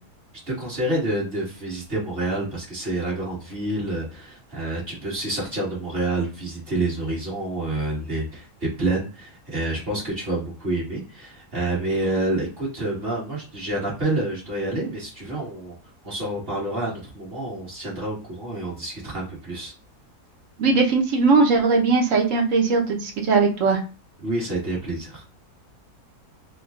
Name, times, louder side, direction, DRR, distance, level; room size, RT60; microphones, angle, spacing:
voice 1, 0.5-15.7 16.0-19.7 24.2-25.2, right 2 dB, 35° right, -6 dB, 1.9 m, -28 dB
voice 2, 20.6-23.8, right 4 dB, 60° right, 2 dB, 1.2 m, -19 dB
3.6 x 2.3 x 3.7 m, 0.34 s
omnidirectional pair, 1.7 m